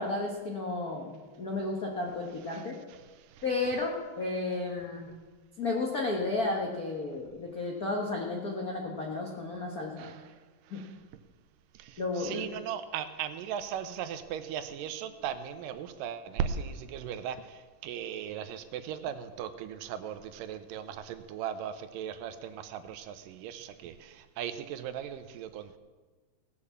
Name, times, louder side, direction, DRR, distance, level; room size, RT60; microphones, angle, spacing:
voice 1, 0.0-2.8 3.4-5.1 5.6-10.1 10.7-10.8 12.0-12.5, left 3 dB, 85° left, -1 dB, 0.8 m, -33 dB
voice 2, 12.2-17.4 17.8-25.8, right 8 dB, 85° right, 11 dB, 2.4 m, -37 dB
17.5 x 6.7 x 7.1 m, 1.3 s
omnidirectional pair, 3.9 m